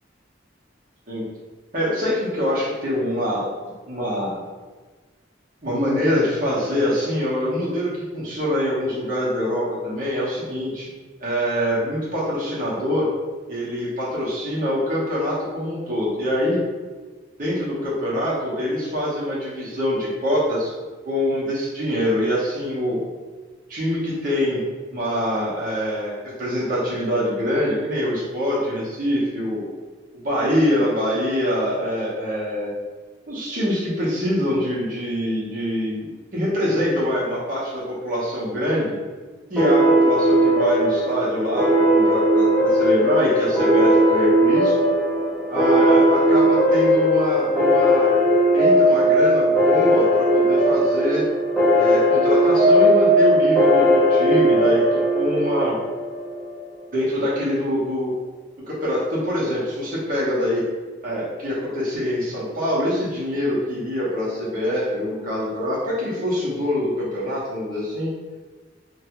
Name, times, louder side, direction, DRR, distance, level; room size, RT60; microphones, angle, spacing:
voice 1, 1.7-3.5 3.9-4.3 5.6-10.9 11.2-13.1 13.5-16.6 17.4-20.7 21.0-23.0 23.7-24.6 24.9-29.6 30.1-32.7 33.3-39.0 39.5-44.8 45.5-48.2 48.5-51.3 51.7-54.8 55.1-55.8 56.9-58.1 58.7-60.6 61.0-68.1, equal, 45° right, -7 dB, 0.9 m, -24 dB
sound 1, 39.6-56.7, equal, 5° right, 0.7 m, -18 dB
2.7 x 2.3 x 2.8 m, 1.4 s
head